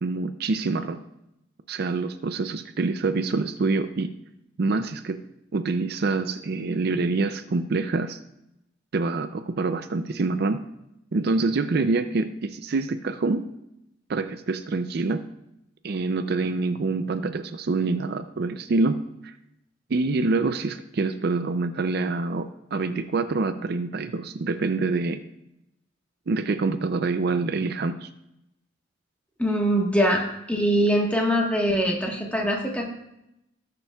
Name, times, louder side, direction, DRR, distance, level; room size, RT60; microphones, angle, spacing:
voice 1, 0.0-1.0 1.7-4.1 4.6-5.2 5.5-8.2 8.9-10.6 11.1-13.5 14.1-15.2 15.8-19.0 19.2-19.3 19.9-25.2 26.3-28.1, right 3 dB, 55° right, 10 dB, 0.4 m, -26 dB
voice 2, 29.4-32.9, equal, 5° left, 0 dB, 1.3 m, -23 dB
18.5 x 6.8 x 2.3 m, 0.84 s
head